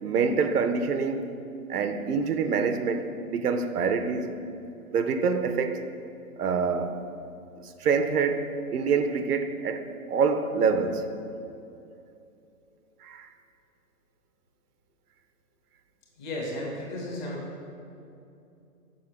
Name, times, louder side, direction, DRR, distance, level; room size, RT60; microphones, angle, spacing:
voice 1, 0.0-1.3 1.7-4.3 4.9-5.8 6.4-7.0 7.6-8.4 8.7-11.1 13.0-13.3, right 5 dB, 90° right, 0.6 m, -26 dB
voice 2, 16.2-17.4, left 1 dB, 30° left, 1.1 m, -34 dB
6.3 x 5.5 x 2.9 m
hypercardioid pair, 150°, 44 cm